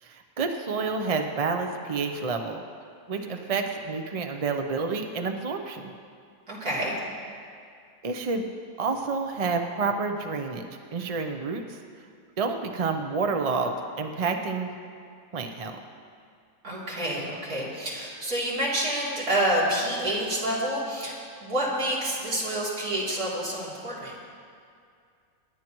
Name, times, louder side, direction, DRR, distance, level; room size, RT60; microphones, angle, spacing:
voice 1, 0.0-2.6 3.1-5.9 8.0-8.4 8.8-10.7 10.9-11.8 12.4-14.8 15.3-15.8, right 4 dB, 45° right, 5 dB, 0.4 m, -29 dB
voice 2, 3.1-3.5 6.5-7.0 16.6-24.1, right 1 dB, 85° right, -7 dB, 3.5 m, -28 dB
26.0 x 10.5 x 3.0 m, 2.3 s
omnidirectional pair, 1.5 m